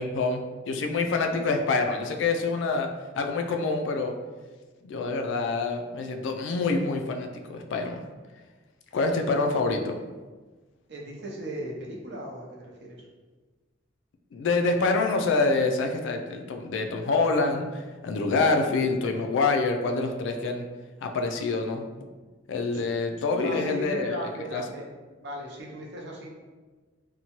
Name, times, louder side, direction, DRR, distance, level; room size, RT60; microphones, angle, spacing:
voice 1, 0.0-2.9 3.2-4.1 4.8-8.0 8.9-10.0 14.3-20.7 21.0-21.8 22.5-24.2 24.5-24.6, left 3 dB, 75° left, 4 dB, 0.3 m, -26 dB
voice 2, 10.9-13.0 22.7-22.9 23.4-24.9 25.2-26.3, right 1 dB, 60° right, -2 dB, 0.6 m, -37 dB
2.7 x 2.2 x 2.8 m, 1.3 s
head